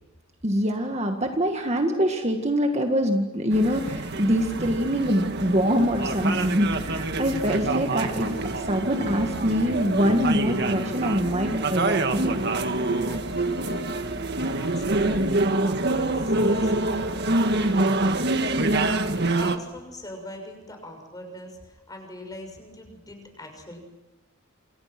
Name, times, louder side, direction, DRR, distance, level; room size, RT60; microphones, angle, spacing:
voice 1, 0.4-12.4, equal, 30° right, 4 dB, 1.9 m, -24 dB
sound 1, 3.5-19.6, right 2 dB, 50° right, 1.8 m, -26 dB
voice 2, 13.0-14.0 14.4-15.3 15.5-23.8, left 1 dB, 20° left, 4 dB, 6.4 m, -42 dB
28.5 x 28.0 x 6.1 m, 1.1 s
head